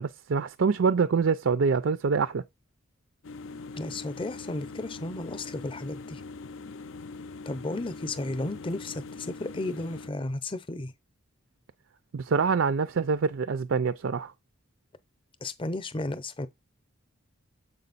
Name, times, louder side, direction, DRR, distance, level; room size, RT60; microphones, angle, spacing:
voice 1, 0.0-2.4 12.1-14.3, right 5 dB, 65° right, 0.4 m, -25 dB
sound 1, 3.2-10.1, left 3 dB, 65° left, 0.5 m, -42 dB
voice 2, 3.7-6.2 7.5-10.9 15.4-16.5, left 2 dB, 25° left, 0.7 m, -34 dB
7.5 x 5.1 x 4.0 m
head